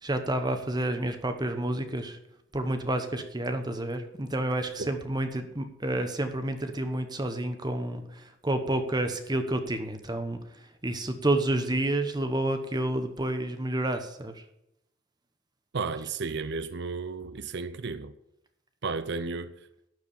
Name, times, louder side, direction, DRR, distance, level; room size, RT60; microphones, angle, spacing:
voice 1, 0.0-2.2 2.5-14.4, right 1 dB, 20° right, 1.0 m, -30 dB
voice 2, 15.7-18.1 18.8-19.6, right 4 dB, 55° right, 0.6 m, -33 dB
12.0 x 4.8 x 8.7 m
head